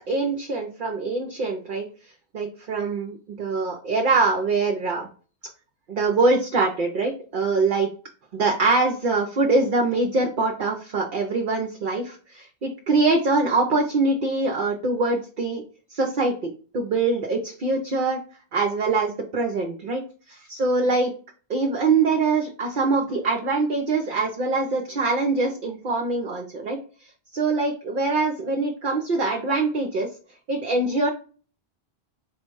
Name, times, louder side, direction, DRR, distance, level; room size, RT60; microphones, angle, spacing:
voice 1, 0.1-1.8 2.3-5.1 5.9-7.9 8.3-15.6 15.9-18.2 18.5-20.0 20.3-21.1 21.5-26.8 27.3-30.1 30.5-31.1, right 3 dB, 55° right, 2 dB, 0.7 m, -23 dB
4.6 x 2.1 x 4.6 m, 0.39 s
omnidirectional pair, 1.1 m